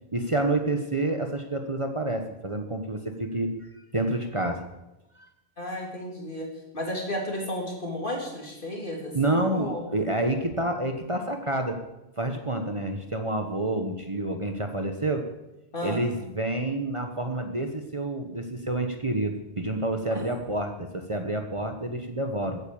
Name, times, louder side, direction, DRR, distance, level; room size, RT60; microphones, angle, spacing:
voice 1, 0.1-4.6 5.2-5.3 9.1-11.8 12.2-15.2 15.8-22.6, right 2 dB, 30° right, 5 dB, 1.2 m, -28 dB
voice 2, 5.6-6.5 6.7-9.8 15.7-16.0 20.1-20.2, left 1 dB, 55° left, 0 dB, 3.6 m, -33 dB
15.0 x 9.8 x 7.1 m, 0.94 s
omnidirectional pair, 1.1 m